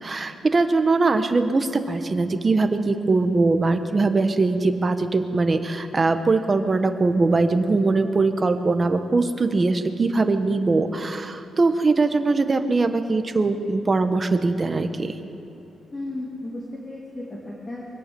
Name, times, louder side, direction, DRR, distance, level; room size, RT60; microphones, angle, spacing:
voice 1, 0.0-15.2, right 3 dB, 25° right, 7 dB, 1.2 m, -21 dB
voice 2, 15.9-17.9, left 2 dB, 20° left, -2 dB, 2.5 m, -34 dB
23.5 x 17.0 x 7.0 m, 2.9 s
wide cardioid pair, 165°, 0 cm